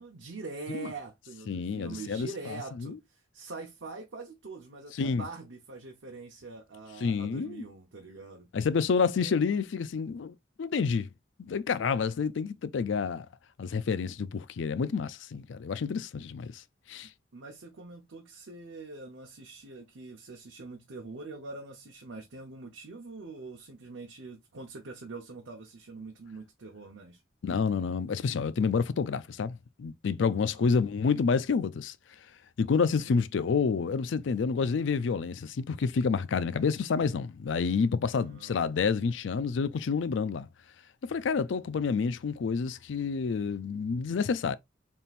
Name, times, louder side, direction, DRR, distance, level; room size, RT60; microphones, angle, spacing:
voice 1, 0.0-8.5 9.2-9.3 17.3-27.2 30.5-30.9 32.9-33.3 38.1-38.7, right 3 dB, 90° right, 0.8 m, -44 dB
voice 2, 1.5-2.3 2.8-3.0 5.0-5.2 7.0-7.6 8.5-11.1 11.4-13.3 13.6-16.6 16.9-17.1 27.4-31.9 32.6-40.5 41.0-44.6, left 5 dB, 75° left, 0.4 m, -29 dB
4.2 x 3.6 x 2.5 m
head